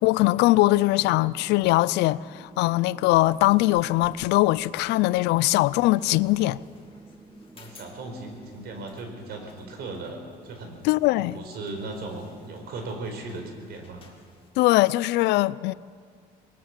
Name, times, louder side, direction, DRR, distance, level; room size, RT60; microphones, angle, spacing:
voice 1, 0.0-6.6 10.8-11.4 14.6-15.7, left 18 dB, 90° left, 0.5 m, -21 dB
sound 1, 0.8-10.0, right 1 dB, 15° right, 1.5 m, -50 dB
sound 2, 3.0-14.5, left 4 dB, 30° left, 3.2 m, -55 dB
voice 2, 7.5-10.8 11.1-14.1, right 2 dB, 70° right, 4.7 m, -37 dB
21.0 x 20.0 x 7.5 m
cardioid pair, 110°, 17 cm